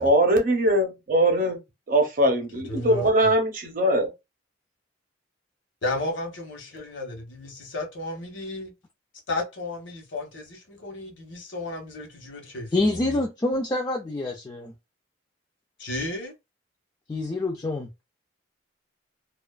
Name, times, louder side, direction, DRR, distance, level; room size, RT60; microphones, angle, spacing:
voice 1, 0.0-1.6 1.9-4.1, right 1 dB, 45° right, 0.6 m, -21 dB
voice 2, 2.5-3.3 5.8-8.7 9.3-13.2 15.8-16.3, left 2 dB, 70° left, 0.9 m, -33 dB
voice 3, 12.7-14.7 17.1-17.9, left 2 dB, 20° left, 0.3 m, -26 dB
2.4 x 2.3 x 2.3 m
head